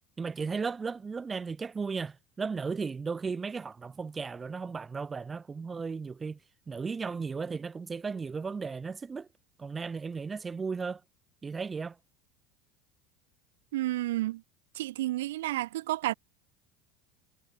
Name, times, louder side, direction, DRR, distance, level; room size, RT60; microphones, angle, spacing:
voice 1, 0.2-6.4 6.7-9.3 9.6-11.0 11.4-12.0, right 5 dB, 20° right, 2.7 m, -35 dB
voice 2, 13.7-14.4 14.7-16.1, right 16 dB, 85° right, 1.6 m, -31 dB
supercardioid pair, 100°, 0 cm